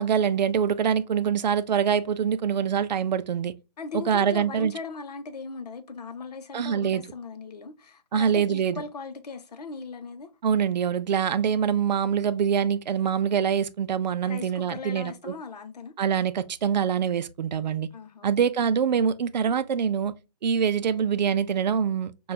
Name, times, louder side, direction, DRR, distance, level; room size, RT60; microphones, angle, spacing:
voice 1, 0.0-3.5 3.9-4.7 6.5-7.0 8.1-8.8 10.4-15.3 16.0-17.9 18.2-20.1 20.4-22.3, right 7 dB, 85° right, 0.4 m, -24 dB
voice 2, 3.8-10.3 14.2-15.9 17.9-18.4, left 4 dB, 70° left, 0.7 m, -38 dB
4.4 x 2.3 x 2.2 m
hypercardioid pair, 165°, 21 cm